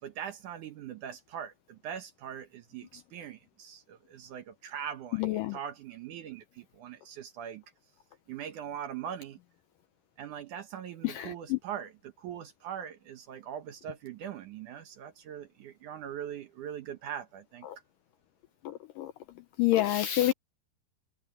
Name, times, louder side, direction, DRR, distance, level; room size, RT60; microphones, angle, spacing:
voice 1, 0.0-7.6 8.3-9.4 10.2-17.7, right 9 dB, 65° right, 2.2 m, -41 dB
voice 2, 5.2-5.6 11.0-11.6 17.6-17.8 18.6-19.1 19.6-20.3, left 14 dB, 80° left, 2.0 m, -28 dB
omnidirectional pair, 4.6 m